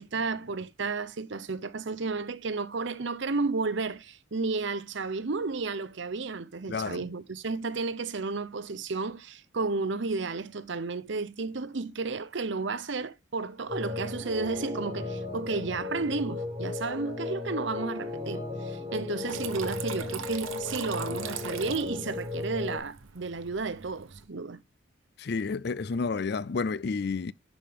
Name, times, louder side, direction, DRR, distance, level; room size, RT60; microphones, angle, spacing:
voice 1, 0.0-24.6, right 4 dB, 65° right, 0.7 m, -32 dB
voice 2, 6.7-7.0 25.2-27.3, left 4 dB, 50° left, 0.4 m, -30 dB
sound 1, 13.7-22.8, left 3 dB, 15° right, 4.3 m, -35 dB
Water tap faucet / Trickle dribble, 19.3-24.3, right 7 dB, 85° right, 1.0 m, -41 dB
11.5 x 5.0 x 3.6 m
head